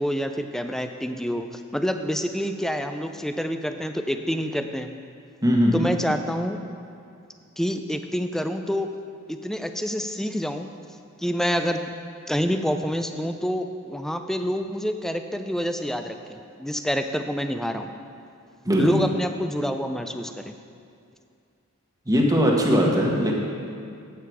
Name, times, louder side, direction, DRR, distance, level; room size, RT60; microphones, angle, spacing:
voice 1, 0.0-4.9 5.7-6.6 7.6-9.0 9.3-10.7 11.2-11.9 12.3-17.9 18.8-20.5, equal, ahead, 7 dB, 0.3 m, -27 dB
voice 2, 5.4-5.9 18.6-19.0 22.1-23.3, equal, 15° right, -2 dB, 1.2 m, -20 dB
8.4 x 7.5 x 4.6 m, 2.5 s
head